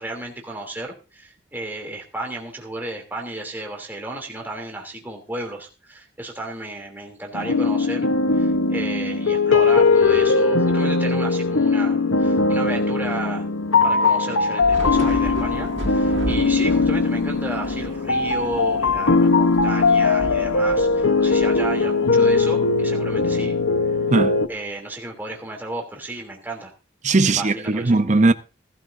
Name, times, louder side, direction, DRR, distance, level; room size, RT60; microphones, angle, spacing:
voice 1, 0.0-13.5 13.8-23.6 24.5-26.7 27.4-28.0, right 2 dB, 10° right, 2.9 m, -33 dB
sound 1, 7.3-24.5, left 4 dB, 90° left, 1.0 m, -20 dB
Thunder / Rain, 14.6-22.1, right 1 dB, 65° right, 1.7 m, -33 dB
voice 2, 27.0-28.3, right 3 dB, 35° right, 0.7 m, -18 dB
18.5 x 12.5 x 2.7 m
head